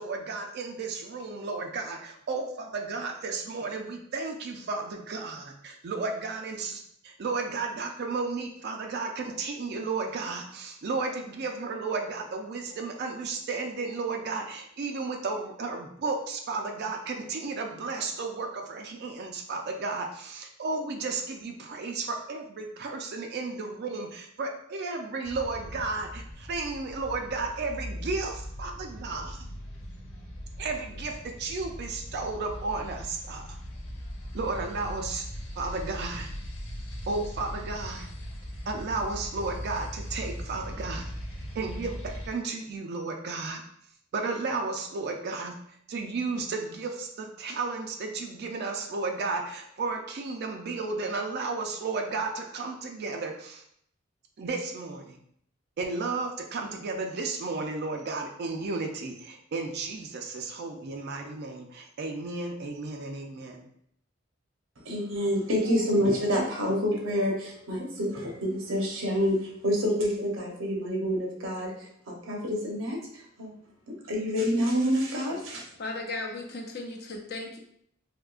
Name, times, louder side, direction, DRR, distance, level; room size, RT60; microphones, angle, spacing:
voice 1, 0.0-29.4 30.6-33.4 34.3-35.2 35.6-36.3 37.1-38.1 38.7-41.1 41.5-43.6 44.1-45.5 45.9-53.6 54.4-55.2 55.8-63.7, right 3 dB, 55° right, 2 dB, 0.4 m, -33 dB
sound 1, 25.2-42.3, equal, 75° left, 1.0 m, -39 dB
voice 2, 64.8-73.5 73.9-75.7, equal, 80° right, 0 dB, 0.8 m, -28 dB
voice 3, 75.8-77.6, left 2 dB, 50° left, 2 dB, 0.5 m, -36 dB
3.6 x 2.7 x 2.4 m, 0.69 s
head